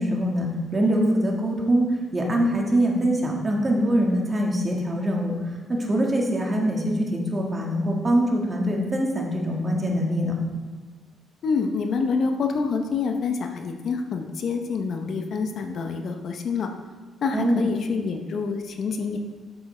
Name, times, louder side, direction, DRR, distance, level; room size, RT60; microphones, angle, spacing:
voice 1, 0.0-1.9 2.1-10.4 17.3-17.6, equal, 30° right, 0 dB, 1.5 m, -23 dB
voice 2, 11.4-16.7 17.2-19.2, left 5 dB, 60° left, 5 dB, 0.7 m, -27 dB
7.8 x 7.1 x 3.2 m, 1.4 s
cardioid pair, 90°, 0 cm